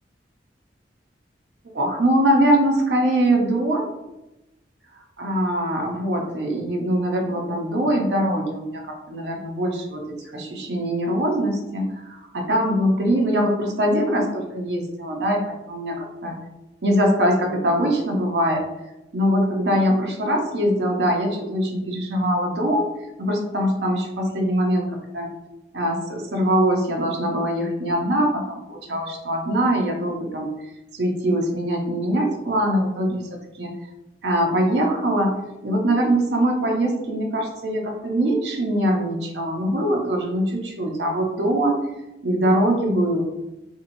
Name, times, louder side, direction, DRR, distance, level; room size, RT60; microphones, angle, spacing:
voice 1, 1.7-3.9 5.2-8.8 9.1-16.4 16.8-18.6 19.1-22.9 23.2-25.3 25.7-30.5 30.9-33.2 33.6-33.7 34.2-35.4 35.6-41.8 42.2-43.2, right 1 dB, 65° right, 1 dB, 0.6 m, -22 dB
2.8 x 2.8 x 2.6 m, 0.96 s
head